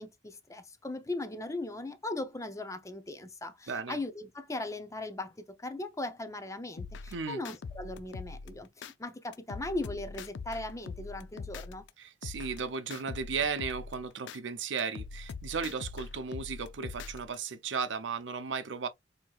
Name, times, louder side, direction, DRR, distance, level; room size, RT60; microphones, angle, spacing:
voice 1, 0.0-11.9, left 2 dB, 15° left, 0.5 m, -38 dB
voice 2, 3.7-4.0 7.1-7.4 12.0-18.9, right 5 dB, 75° right, 0.6 m, -35 dB
sound 1, 6.8-8.9 9.3-11.9 12.2-14.4 14.8-17.3, left 4 dB, 70° left, 0.4 m, -43 dB
4.5 x 2.8 x 2.3 m
head